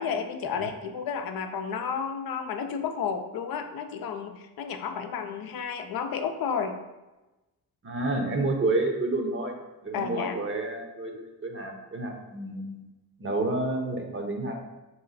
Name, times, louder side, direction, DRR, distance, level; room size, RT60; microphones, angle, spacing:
voice 1, 0.0-6.8 9.9-10.4, left 6 dB, 70° left, 6 dB, 0.5 m, -32 dB
voice 2, 7.8-12.8 13.2-14.6, right 2 dB, 35° right, 3 dB, 0.8 m, -30 dB
3.1 x 3.1 x 4.0 m, 1.1 s
cardioid pair, 55°, 37 cm